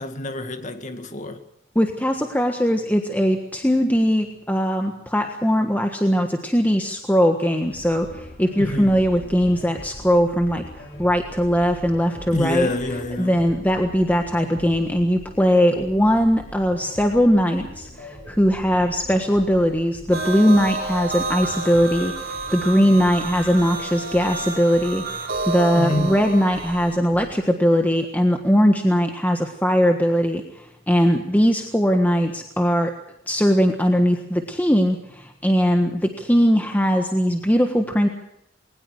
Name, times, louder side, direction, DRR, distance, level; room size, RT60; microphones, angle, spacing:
voice 1, 0.0-1.4 8.6-9.0 12.3-13.4 25.7-26.3, left 1 dB, 40° left, 2.0 m, -27 dB
voice 2, 1.7-12.7 13.2-22.1 22.5-32.9 33.3-38.1, equal, 10° left, 1.4 m, -20 dB
sound 1, 7.7-27.3, left 1 dB, 55° left, 6.9 m, -42 dB
sound 2, 20.1-27.0, right 2 dB, 50° right, 4.2 m, -30 dB
21.5 x 19.5 x 6.5 m
head